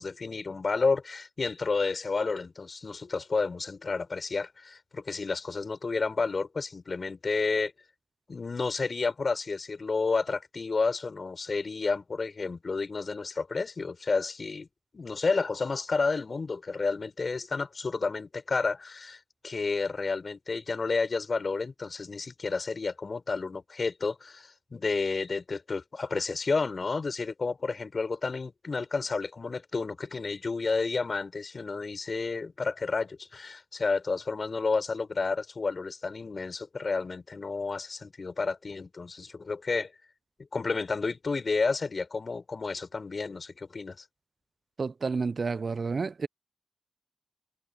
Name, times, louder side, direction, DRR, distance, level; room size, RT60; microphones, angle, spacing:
voice 1, 0.0-7.7 8.3-14.7 14.9-19.2 19.4-39.9 40.5-44.0, left 4 dB, 50° left, 4.0 m, -31 dB
voice 2, 44.8-46.3, right 4 dB, 50° right, 0.5 m, -30 dB
cardioid pair, 50°, 0 cm